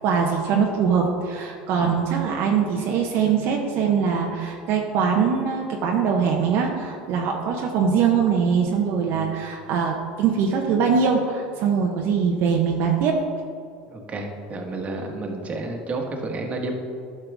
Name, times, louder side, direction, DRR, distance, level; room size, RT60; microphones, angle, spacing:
voice 1, 0.0-13.2, right 6 dB, 60° right, 0 dB, 0.9 m, -22 dB
voice 2, 13.9-16.7, right 2 dB, 30° right, 2 dB, 1.5 m, -31 dB
11.5 x 5.7 x 3.5 m, 2.4 s
hypercardioid pair, 90°, 4 cm